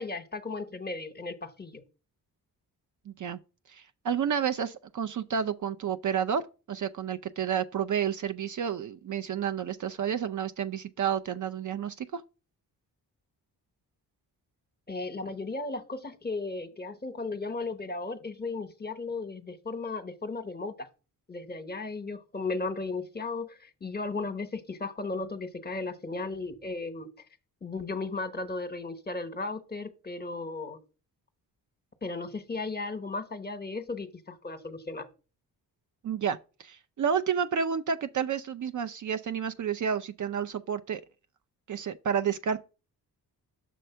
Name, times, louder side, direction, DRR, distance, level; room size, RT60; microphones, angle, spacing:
voice 1, 0.0-1.8 14.9-20.9 21.3-27.1 27.6-30.8 32.0-35.1, left 3 dB, 25° left, 1.0 m, -35 dB
voice 2, 3.1-3.4 3.7-6.4 6.7-12.2 36.0-41.0 41.7-42.6, right 7 dB, 50° right, 0.5 m, -30 dB
6.4 x 3.3 x 5.6 m
cardioid pair, 55°, 40 cm